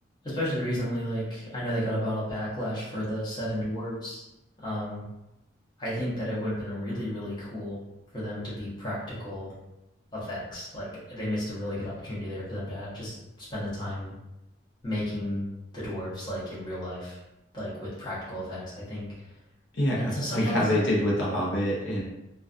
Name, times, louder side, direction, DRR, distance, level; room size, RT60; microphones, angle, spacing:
voice 1, 0.2-4.2 4.6-5.0 5.8-7.8 8.1-9.5 10.1-13.2 13.5-14.1 14.8-15.4 15.7-17.2 17.5-19.1 20.0-20.7, equal, 25° left, -9 dB, 0.8 m, -32 dB
voice 2, 19.7-22.0, left 1 dB, 70° left, -5 dB, 0.6 m, -26 dB
2.3 x 2.3 x 2.5 m, 0.94 s
head